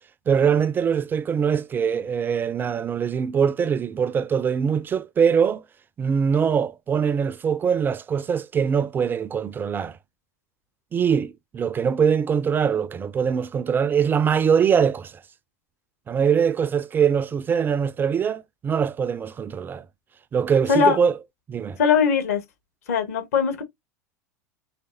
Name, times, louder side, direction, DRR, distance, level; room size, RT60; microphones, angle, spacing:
voice 1, 0.3-5.6 6.0-10.0 10.9-15.1 16.1-19.8 20.3-21.1 21.5-21.8, right 7 dB, 20° right, 0.4 m, -22 dB
voice 2, 21.8-22.4 22.9-23.6, left 6 dB, 65° left, 1.4 m, -20 dB
4.9 x 3.3 x 2.6 m
figure-of-eight pair, 80°, 9 cm